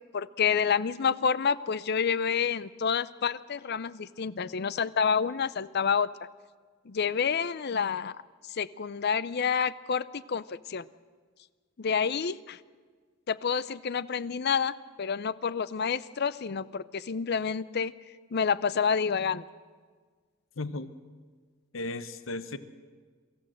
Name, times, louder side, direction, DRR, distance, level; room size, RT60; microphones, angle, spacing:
voice 1, 0.0-6.1 6.9-8.1 8.5-10.9 11.8-12.6 13.3-17.9 18.3-19.4, left 6 dB, 55° left, 17 dB, 0.6 m, -28 dB
voice 2, 20.6-20.9 21.7-22.6, left 2 dB, 75° left, 12 dB, 0.9 m, -35 dB
23.5 x 14.0 x 7.7 m, 1.5 s
head